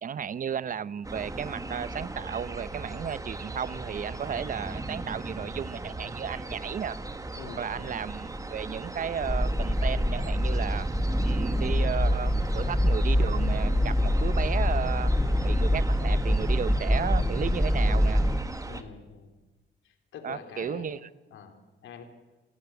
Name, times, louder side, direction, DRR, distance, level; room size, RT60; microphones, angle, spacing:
voice 1, 0.0-7.0 7.6-10.9 11.2-15.1 15.4-18.2 20.2-21.1, right 8 dB, 45° right, 18 dB, 0.8 m, -34 dB
sound 1, 1.0-18.8, right 2 dB, 15° right, 1.7 m, -37 dB
voice 2, 7.4-8.0 18.7-19.4 19.8-22.0, left 6 dB, 75° left, 5 dB, 3.4 m, -45 dB
sound 2, 9.2-18.4, equal, 5° left, 1.2 m, -25 dB
29.0 x 15.0 x 8.1 m, 1.2 s
cardioid pair, 90°, 20 cm